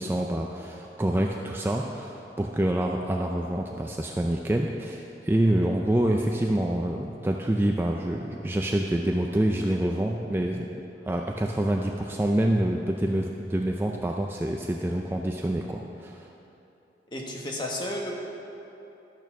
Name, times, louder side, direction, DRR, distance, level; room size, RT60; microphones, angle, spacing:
voice 1, 0.0-10.7 11.0-16.3, right 1 dB, 15° right, 1 dB, 0.4 m, -27 dB
voice 2, 17.1-18.1, left 1 dB, 25° left, -1 dB, 1.3 m, -32 dB
12.5 x 6.7 x 6.1 m, 2.9 s
head